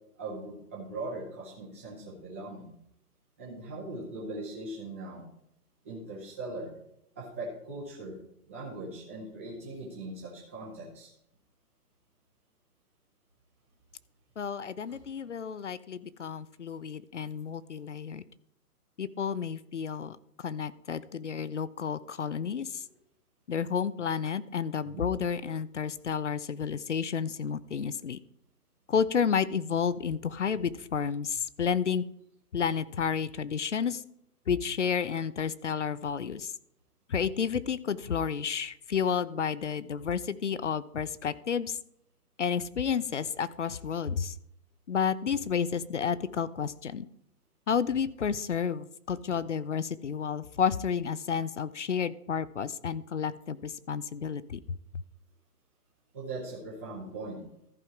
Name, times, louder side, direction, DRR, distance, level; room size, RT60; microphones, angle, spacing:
voice 1, 0.2-2.7 3.4-5.2 5.8-6.7 7.1-8.2 8.5-11.1 14.9-15.0 24.8-25.1 56.1-57.4, right 2 dB, 10° right, -6 dB, 0.9 m, -40 dB
voice 2, 14.4-18.2 19.0-22.8 23.5-28.2 28.9-32.0 32.5-34.0 34.5-36.5 37.1-41.8 42.4-44.3 44.9-47.0 47.7-54.6, left 7 dB, 50° left, 18 dB, 0.5 m, -31 dB
14.0 x 5.4 x 4.5 m, 0.73 s
hypercardioid pair, 175°, 47 cm